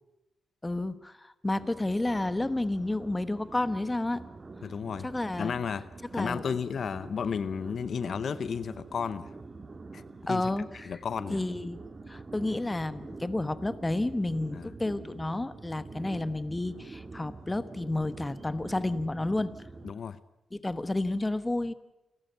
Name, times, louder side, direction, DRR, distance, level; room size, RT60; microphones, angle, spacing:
voice 1, 0.6-4.2 5.0-5.5 6.1-6.4 10.3-10.9 11.3-19.6 20.5-21.7, left 2 dB, 15° left, 14 dB, 1.3 m, -31 dB
sound 1, 1.6-19.9, right 3 dB, 35° right, 1.8 m, -46 dB
voice 2, 4.6-5.1 5.4-9.3 9.9-10.0 10.3-10.5 10.8-11.4 14.5-14.7 19.8-20.2, left 6 dB, 65° left, 15 dB, 0.8 m, -33 dB
28.5 x 12.5 x 9.4 m, 0.94 s
cardioid pair, 80°, 0 cm